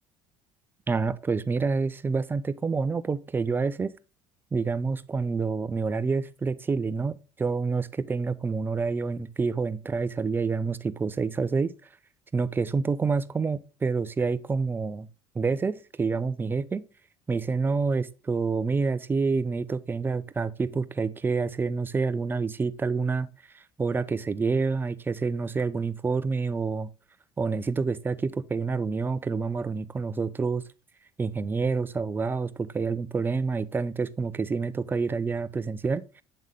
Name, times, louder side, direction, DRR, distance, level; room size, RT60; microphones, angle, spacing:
voice 1, 0.9-3.9 4.5-11.7 12.3-15.1 15.4-16.9 17.3-23.3 23.5-26.9 27.4-30.6 31.2-36.2, right 4 dB, 20° right, 0.4 m, -28 dB
7.7 x 3.6 x 3.7 m
supercardioid pair, 105°, 12 cm